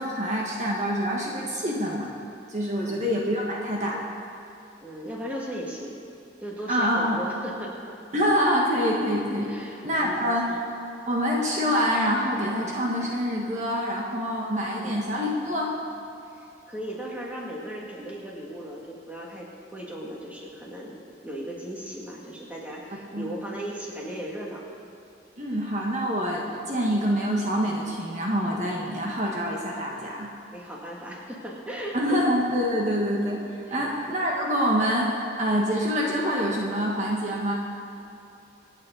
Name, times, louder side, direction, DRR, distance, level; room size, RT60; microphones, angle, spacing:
voice 1, 0.0-2.1 2.5-4.0 6.7-7.2 8.1-10.6 11.1-15.7 22.9-23.3 25.4-30.3 31.9-33.4 33.7-37.5, equal, 40° right, -2 dB, 1.5 m, -26 dB
voice 2, 4.8-6.0 6.4-7.8 9.5-10.5 14.7-15.0 16.3-24.7 30.5-32.2 33.6-33.9, equal, 10° right, -4 dB, 2.2 m, -37 dB
26.5 x 9.0 x 4.0 m, 3.0 s
head